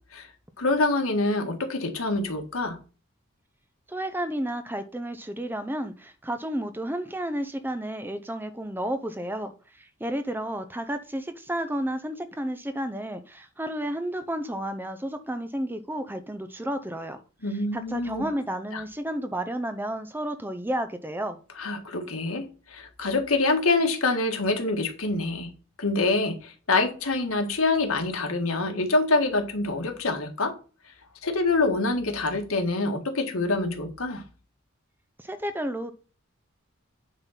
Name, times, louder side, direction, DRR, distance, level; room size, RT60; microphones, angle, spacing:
voice 1, 0.6-2.8 17.4-18.2 18.7-18.8 21.6-25.5 25.8-30.5 31.2-34.2, left 3 dB, 85° left, 1.7 m, -26 dB
voice 2, 3.9-17.2 17.7-21.4 35.2-35.9, right 1 dB, 10° right, 0.6 m, -32 dB
9.0 x 3.9 x 5.7 m
head